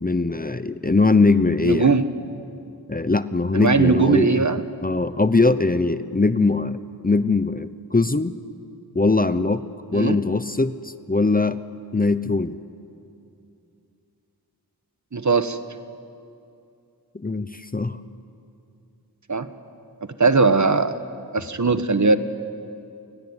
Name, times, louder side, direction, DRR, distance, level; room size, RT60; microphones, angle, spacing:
voice 1, 0.0-1.9 2.9-4.4 4.8-6.8 7.0-8.4 8.9-9.7 9.9-11.6 11.9-12.6 17.1-18.0, left 3 dB, 25° left, 13 dB, 0.8 m, -21 dB
voice 2, 1.6-2.1 3.5-4.6 9.9-10.2 15.1-15.6 19.3-19.5 20.2-21.0 21.3-22.2, right 4 dB, 50° right, 11 dB, 1.2 m, -19 dB
29.0 x 18.0 x 9.7 m, 2.6 s
wide cardioid pair, 70°, 38 cm